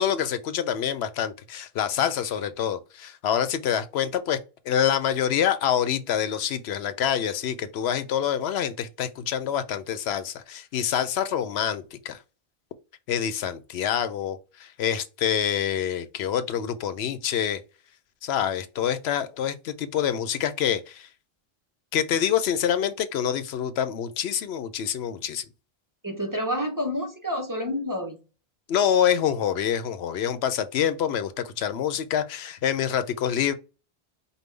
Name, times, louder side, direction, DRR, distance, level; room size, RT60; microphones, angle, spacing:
voice 1, 0.0-4.4 4.7-12.2 13.1-17.6 18.2-21.1 21.9-25.4 28.7-33.5, left 9 dB, 85° left, 0.8 m, -26 dB
voice 2, 26.0-28.2, equal, 20° right, 0.7 m, -29 dB
5.2 x 2.2 x 3.2 m
omnidirectional pair, 1.0 m